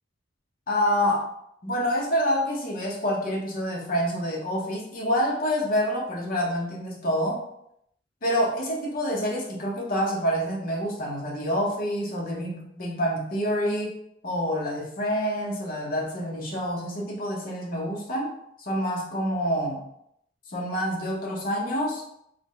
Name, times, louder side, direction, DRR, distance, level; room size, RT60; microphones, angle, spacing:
voice 1, 0.7-1.3 1.6-7.4 8.2-13.9 14.2-18.3 18.6-19.8 20.5-22.0, equal, 50° left, -2 dB, 0.8 m, -27 dB
3.7 x 2.1 x 3.7 m, 0.74 s
head